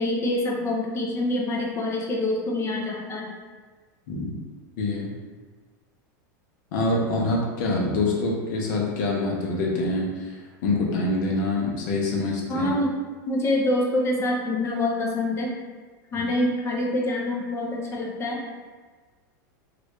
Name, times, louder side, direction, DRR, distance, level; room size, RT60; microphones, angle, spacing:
voice 1, 0.0-3.3 12.5-12.9 13.3-15.5 16.1-18.4, left 1 dB, 25° left, -1 dB, 0.7 m, -26 dB
voice 2, 4.8-5.1 6.7-12.7, left 2 dB, 65° left, -2 dB, 0.8 m, -25 dB
3.0 x 2.6 x 3.1 m, 1.4 s
supercardioid pair, 125°, 11 cm